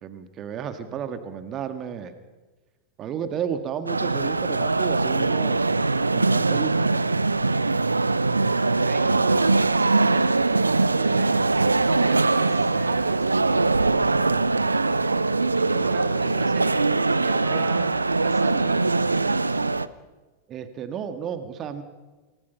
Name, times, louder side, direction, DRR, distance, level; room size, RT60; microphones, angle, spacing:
voice 1, 0.0-2.1 3.0-5.7 6.1-7.0 17.5-17.7 20.5-21.8, right 8 dB, 30° right, 9 dB, 1.9 m, -32 dB
sound 1, 3.9-19.9, right 3 dB, 80° right, 0.8 m, -22 dB
voice 2, 8.7-15.1 15.5-17.9 18.2-19.7, right 8 dB, 55° right, 4 dB, 3.3 m, -39 dB
29.0 x 19.0 x 5.8 m, 1.2 s
figure-of-eight pair, 90°, 0 cm